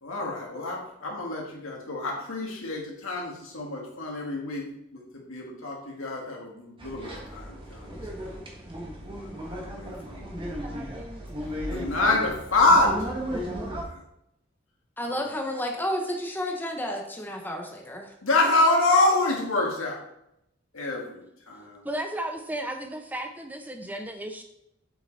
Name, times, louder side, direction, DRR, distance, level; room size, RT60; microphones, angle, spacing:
voice 1, 0.0-8.4 9.1-10.3 11.7-13.2 13.8-14.0 15.1-15.3 18.2-20.0 20.7-21.8, left 2 dB, 80° left, -1 dB, 2.2 m, -27 dB
sound 1, 6.8-13.8, equal, 25° right, 1.5 m, -35 dB
voice 2, 15.0-18.1, equal, 10° left, 1 dB, 1.0 m, -31 dB
voice 3, 21.8-24.4, right 1 dB, 10° right, 6 dB, 0.6 m, -34 dB
7.6 x 6.0 x 4.2 m, 0.79 s
head